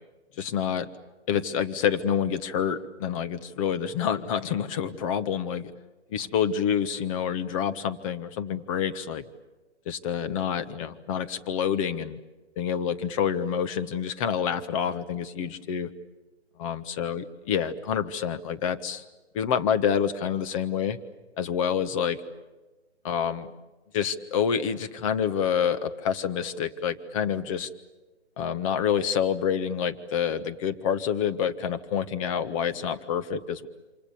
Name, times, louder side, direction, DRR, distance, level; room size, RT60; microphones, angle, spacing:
voice 1, 0.4-0.9 1.3-5.7 6.1-9.2 9.8-12.2 12.6-15.9 16.6-19.0 19.3-21.0 21.4-22.2 23.0-23.5 23.9-27.7 28.4-33.7, left 8 dB, 30° left, 10 dB, 1.4 m, -27 dB
28.0 x 27.5 x 7.0 m, 1.1 s
figure-of-eight pair, 140°, 34 cm